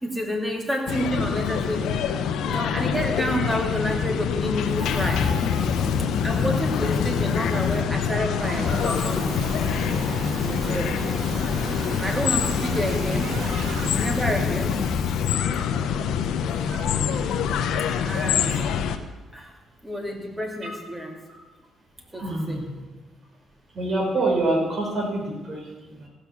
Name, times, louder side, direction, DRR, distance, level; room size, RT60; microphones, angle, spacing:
voice 1, 0.0-1.9 2.4-5.3 6.2-9.4 10.4-11.0 12.0-13.4 14.0-14.8 16.5-16.9 18.0-18.6 19.3-19.6 19.8-21.1 22.1-22.6, equal, 10° right, 2 dB, 2.5 m, -29 dB
sound 1, 0.9-19.0, left 7 dB, 80° left, 0.8 m, -26 dB
Fire, 4.7-7.9 8.3-15.3, left 4 dB, 40° left, 1.0 m, -30 dB
sound 2, 8.4-13.9, right 5 dB, 80° right, 1.3 m, -37 dB
voice 2, 22.2-22.8 23.7-26.1, right 2 dB, 45° right, -1 dB, 4.7 m, -27 dB
15.5 x 6.8 x 7.3 m, 1.2 s
cardioid pair, 90°, 0 cm